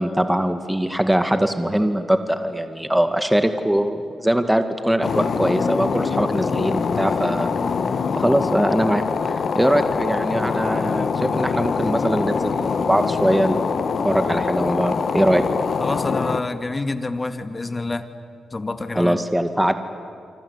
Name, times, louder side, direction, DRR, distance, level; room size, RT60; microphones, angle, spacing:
voice 1, 0.0-7.5 8.2-13.7 14.0-15.4 19.0-19.7, right 1 dB, 5° right, 8 dB, 2.0 m, -21 dB
sound 1, 5.0-16.4, left 5 dB, 60° left, 1.5 m, -24 dB
voice 2, 15.8-18.1 18.5-19.2, left 2 dB, 30° left, 9 dB, 2.0 m, -27 dB
28.5 x 25.0 x 8.4 m, 2.4 s
supercardioid pair, 55°, 0 cm